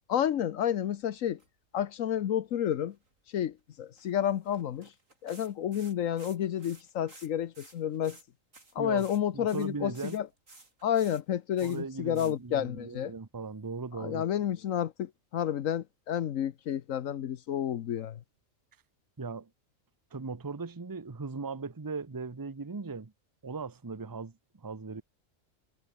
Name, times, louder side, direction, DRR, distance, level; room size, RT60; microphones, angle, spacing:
voice 1, 0.1-1.4 1.7-3.0 3.3-4.9 5.2-8.2 8.7-10.3 10.8-13.1 14.0-18.2, left 10 dB, 80° left, 1.2 m, -30 dB
sound 1, 1.2-1.5 1.8-1.9 2.2-2.4 2.9-3.6 4.0-7.3 7.5-8.2 8.5-9.2 9.5-11.2 11.6-11.8 12.1-12.3, right 2 dB, 75° right, 5.3 m, -54 dB
voice 2, 9.3-10.2 11.6-14.3 19.2-19.5 20.1-23.1 23.4-25.0, right 4 dB, 20° right, 0.8 m, -38 dB
omnidirectional pair, 1.4 m